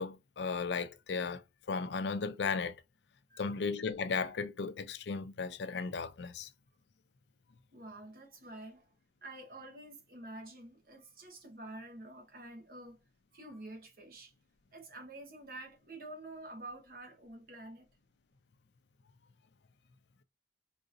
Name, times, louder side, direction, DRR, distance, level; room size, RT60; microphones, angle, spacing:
voice 1, 0.0-1.4 1.7-2.7 3.4-6.5, left 5 dB, 75° left, 0.5 m, -35 dB
voice 2, 7.7-8.9 9.2-13.0 13.3-14.3 14.7-17.9, right 2 dB, 55° right, 1.0 m, -48 dB
3.9 x 2.6 x 2.5 m
head